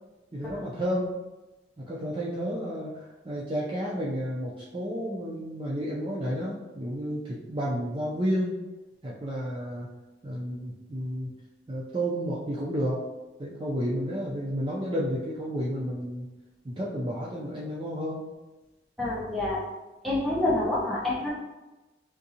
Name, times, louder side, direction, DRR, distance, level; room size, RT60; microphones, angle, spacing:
voice 1, 0.3-1.2 1.8-8.6 9.0-9.9 10.2-11.3 11.7-13.0 13.4-16.3 16.6-18.2, equal, 30° right, -6 dB, 0.4 m, -31 dB
voice 2, 19.0-19.6 20.0-21.3, left 2 dB, ahead, -8 dB, 0.8 m, -27 dB
3.7 x 2.6 x 2.7 m, 1.1 s
head